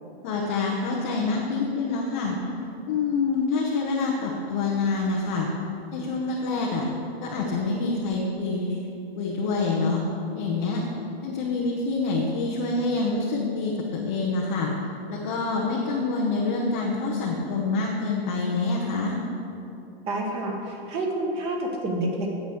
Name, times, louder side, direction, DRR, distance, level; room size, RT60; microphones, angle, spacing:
voice 1, 0.2-2.4 2.9-5.5 5.9-6.8 7.2-8.8 9.2-10.0 10.3-10.8 11.2-14.7 15.1-19.2, left 3 dB, 15° left, -3 dB, 0.4 m, -26 dB
voice 2, 20.1-22.3, right 1 dB, 20° right, 1 dB, 1.1 m, -28 dB
9.4 x 8.0 x 6.8 m, 2.8 s
hypercardioid pair, 170°, 31 cm